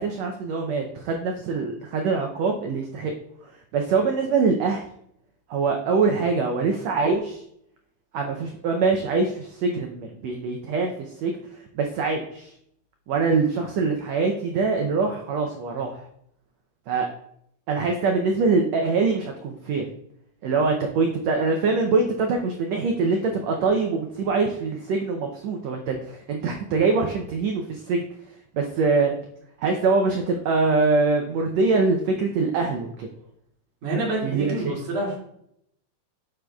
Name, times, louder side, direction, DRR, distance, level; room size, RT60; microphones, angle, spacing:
voice 1, 0.0-3.1 3.7-4.8 5.5-7.4 8.1-12.5 13.1-16.0 16.9-17.1 17.7-19.8 20.4-28.0 28.5-29.1 29.6-33.1 34.2-34.7, right 4 dB, 85° right, 3 dB, 1.5 m, -24 dB
voice 2, 33.8-35.2, right 2 dB, 65° right, -4 dB, 3.9 m, -27 dB
9.6 x 6.6 x 2.3 m, 0.72 s
omnidirectional pair, 3.9 m